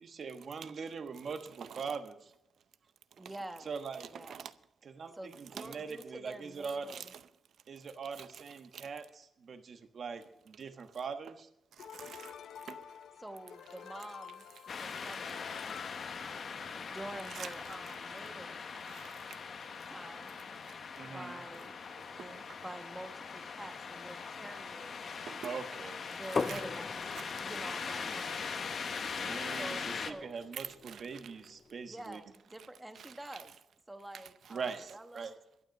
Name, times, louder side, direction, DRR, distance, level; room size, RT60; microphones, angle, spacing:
voice 1, 0.0-2.3 3.6-4.1 4.8-6.9 7.7-11.5 21.0-21.4 25.4-26.1 29.2-32.2 34.5-35.3, right 5 dB, 50° right, 1.2 m, -42 dB
voice 2, 3.2-3.7 4.1-4.4 5.1-7.1 13.2-15.5 16.5-18.6 19.9-20.4 21.1-21.7 22.2-25.0 26.1-28.7 29.6-30.3 31.8-33.5 33.9-35.3, right 1 dB, 10° right, 1.1 m, -47 dB
sound 1, 11.8-17.3, left 8 dB, 85° left, 0.6 m, -50 dB
voice 3, 11.8-12.3 12.7-12.8 17.3-17.5 18.9-19.4 22.2-22.4 25.3-25.5 26.3-26.6 27.2-27.3 28.8-29.2 30.5-31.0 33.0-33.1, right 8 dB, 70° right, 0.7 m, -46 dB
sound 2, 14.7-30.1, left 5 dB, 50° left, 1.0 m, -41 dB
sound 3, 26.4-32.0, left 4 dB, 35° left, 0.5 m, -42 dB
12.5 x 11.5 x 6.5 m
wide cardioid pair, 150°, 0 cm